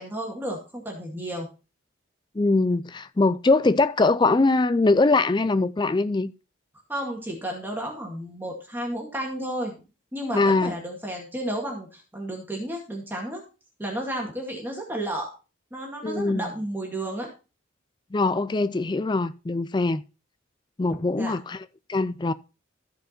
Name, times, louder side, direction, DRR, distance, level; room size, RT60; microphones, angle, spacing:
voice 1, 0.0-1.5 6.9-9.7 10.1-13.4 13.8-15.3 15.7-17.3 20.9-21.3, right 1 dB, 10° right, 2.0 m, -32 dB
voice 2, 2.4-6.3 10.3-10.7 16.0-16.4 18.1-20.0 20.8-21.6 21.9-22.3, left 3 dB, 20° left, 0.4 m, -22 dB
14.0 x 5.1 x 4.4 m
head